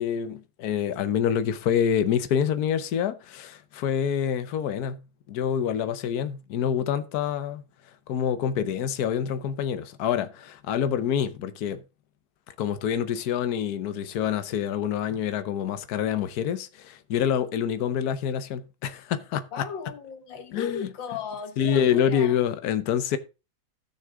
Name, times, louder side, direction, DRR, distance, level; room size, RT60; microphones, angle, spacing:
voice 1, 0.0-7.6 8.1-11.8 12.6-19.5 20.5-20.9 21.6-23.2, left 8 dB, 60° left, 1.3 m, -26 dB
voice 2, 19.5-22.4, left 6 dB, 85° left, 1.9 m, -36 dB
14.5 x 6.5 x 3.6 m
omnidirectional pair, 2.0 m